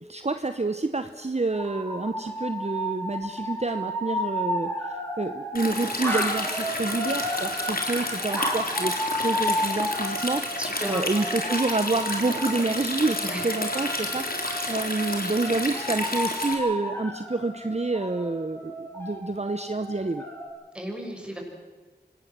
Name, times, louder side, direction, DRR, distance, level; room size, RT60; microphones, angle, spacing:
voice 1, 0.0-10.4 10.9-20.2, right 3 dB, 40° right, 9 dB, 1.0 m, -28 dB
sound 1, 1.5-20.5, equal, 15° left, 7.8 m, -33 dB
Stream, 5.5-16.5, left 1 dB, 55° left, 3.8 m, -31 dB
voice 2, 10.6-11.3 13.2-13.4 20.7-21.4, equal, 5° right, 1 dB, 6.0 m, -34 dB
25.5 x 18.5 x 7.6 m, 1.3 s
wide cardioid pair, 45°, 18 cm